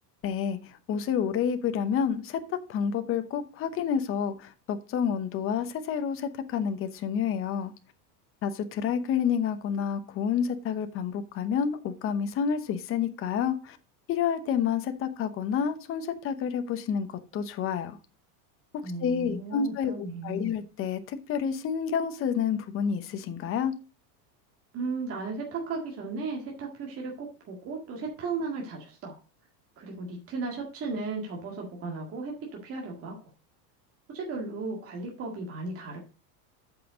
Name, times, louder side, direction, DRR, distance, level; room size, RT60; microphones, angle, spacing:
voice 1, 0.2-7.7 8.4-13.8 14.1-18.0 19.0-23.7, left 7 dB, 30° left, 0.9 m, -29 dB
voice 2, 18.8-20.6 24.7-29.2 29.8-32.3 32.6-33.2 34.1-36.0, right 3 dB, 30° right, 1.9 m, -35 dB
7.5 x 5.6 x 5.0 m
supercardioid pair, 150°, 46 cm